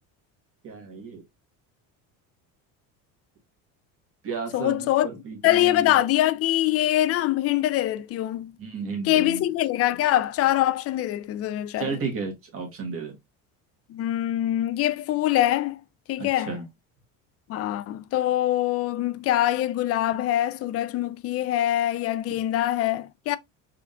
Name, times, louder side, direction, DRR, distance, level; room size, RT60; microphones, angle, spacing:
voice 1, 0.6-1.2 4.2-6.0 8.6-9.4 11.8-13.2 16.2-16.6 22.3-22.4, right 5 dB, 40° right, 1.5 m, -33 dB
voice 2, 4.5-5.1 5.4-8.6 9.0-11.9 13.9-15.8 16.1-16.6 17.5-23.4, left 14 dB, 40° left, 0.4 m, -24 dB
3.7 x 3.5 x 2.4 m
cardioid pair, 125°, 36 cm